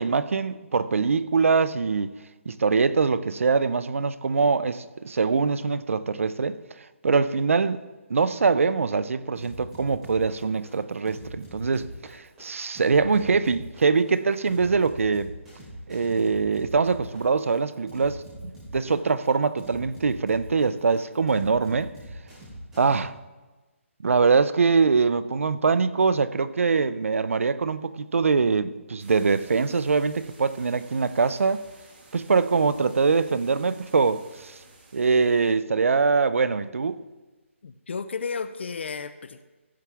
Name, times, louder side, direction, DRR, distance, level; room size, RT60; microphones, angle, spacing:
voice 1, 0.0-2.1 2.5-6.6 7.0-7.8 8.1-15.3 15.9-21.9 22.8-23.1 24.0-31.6 32.1-34.5 34.9-37.0, right 4 dB, 75° right, 0.5 m, -23 dB
sound 1, 9.3-23.0, right 1 dB, 5° right, 3.4 m, -43 dB
sound 2, 29.0-35.5, right 2 dB, 45° right, 2.0 m, -53 dB
voice 2, 37.6-39.4, left 5 dB, 55° left, 0.5 m, -33 dB
15.0 x 7.0 x 3.4 m
hypercardioid pair, 170°, 7 cm